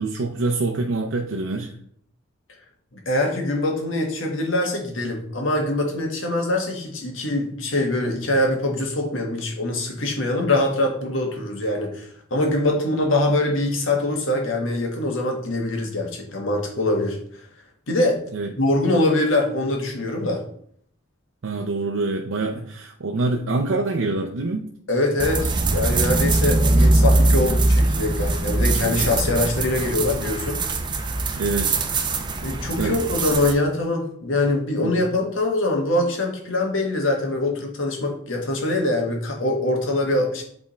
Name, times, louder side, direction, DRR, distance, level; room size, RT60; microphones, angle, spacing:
voice 1, 0.0-1.7 18.3-18.5 21.4-24.7 31.4-31.8 32.8-33.0 34.8-34.9, right 3 dB, 85° right, 2 dB, 0.6 m, -25 dB
voice 2, 2.9-17.2 17.9-18.2 18.6-20.4 24.9-30.6 32.4-40.4, left 2 dB, 80° left, 2 dB, 1.5 m, -23 dB
sound 1, 25.2-33.5, right 2 dB, 20° right, 0.6 m, -21 dB
8.0 x 3.6 x 4.2 m, 0.64 s
head